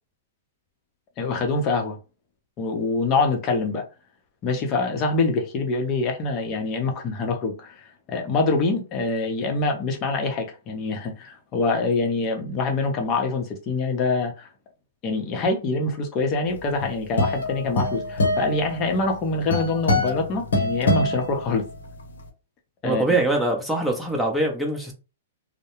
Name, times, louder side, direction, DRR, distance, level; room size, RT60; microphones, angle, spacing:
voice 1, 1.2-2.0 2.6-3.8 4.4-14.5 15.0-21.7 22.8-23.0, left 3 dB, 35° left, 0.8 m, -25 dB
sound 1, 16.6-22.0, left 2 dB, 80° left, 0.8 m, -25 dB
voice 2, 22.8-24.9, right 2 dB, ahead, 0.7 m, -23 dB
2.2 x 2.1 x 3.0 m
hypercardioid pair, 130°, 0 cm